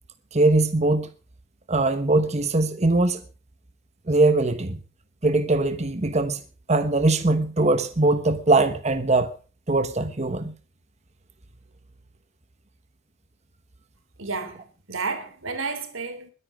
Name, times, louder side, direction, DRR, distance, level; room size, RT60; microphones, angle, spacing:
voice 1, 0.3-1.1 1.7-3.2 4.1-4.8 5.2-6.4 6.7-9.3 9.7-10.5, right 2 dB, 35° right, 1.1 m, -21 dB
voice 2, 14.2-16.3, right 4 dB, 90° right, 3.8 m, -31 dB
21.5 x 10.0 x 5.1 m
head